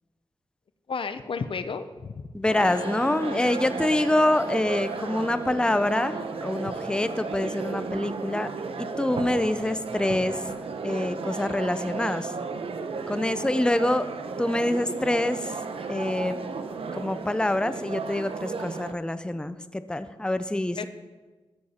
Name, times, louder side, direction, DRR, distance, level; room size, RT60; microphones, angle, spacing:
voice 1, 0.9-2.2 20.8-20.9, left 5 dB, 65° left, 11 dB, 0.6 m, -32 dB
voice 2, 2.3-8.5 8.8-10.4 10.8-12.3 13.1-14.1 14.4-15.6 15.9-16.4 16.9-20.9, left 1 dB, 10° left, 12 dB, 0.5 m, -26 dB
sound 1, 2.5-18.9, right 4 dB, 75° right, 0.8 m, -34 dB
sound 2, 2.7-9.0, left 3 dB, 35° left, 0.9 m, -47 dB
14.0 x 6.6 x 4.3 m, 1.3 s
cardioid pair, 55°, 10 cm